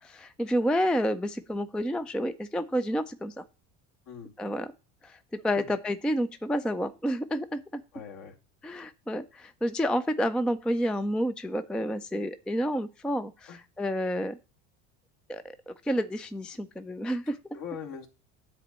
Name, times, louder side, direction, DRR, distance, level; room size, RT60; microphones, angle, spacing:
voice 1, 0.0-3.4 4.4-4.7 5.0-7.8 8.6-13.5 13.8-14.4 15.3-17.4, equal, ahead, 12 dB, 0.4 m, -29 dB
voice 2, 7.9-8.4 13.5-13.6 17.3-18.1, left 7 dB, 55° left, 2 dB, 2.7 m, -41 dB
9.8 x 4.1 x 7.4 m, 0.32 s
supercardioid pair, 105°, 38 cm